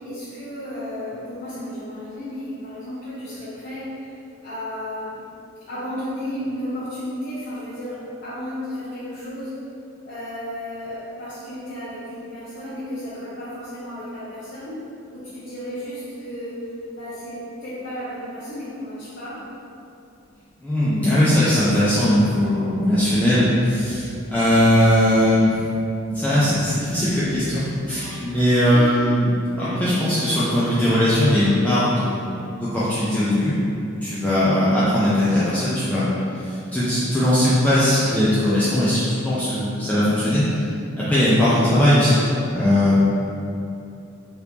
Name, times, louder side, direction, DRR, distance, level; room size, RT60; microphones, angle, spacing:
voice 1, 0.0-4.1 4.4-5.2 5.7-9.6 10.0-14.8 15.1-19.5 28.6-29.2, equal, 50° left, -12 dB, 0.7 m, -33 dB
sound 1, 19.3-19.7 20.2-20.4 21.0-21.5 21.8-28.4 28.6-30.1 30.4-31.6, equal, 40° right, 1.0 m, -39 dB
voice 2, 20.6-24.0 24.3-25.6 26.1-29.3 29.6-32.3 32.6-33.5 33.9-36.1 36.4-40.4 41.0-42.2 42.5-43.0, left 1 dB, 5° left, -11 dB, 0.4 m, -19 dB
2.9 x 2.5 x 3.4 m, 2.7 s
head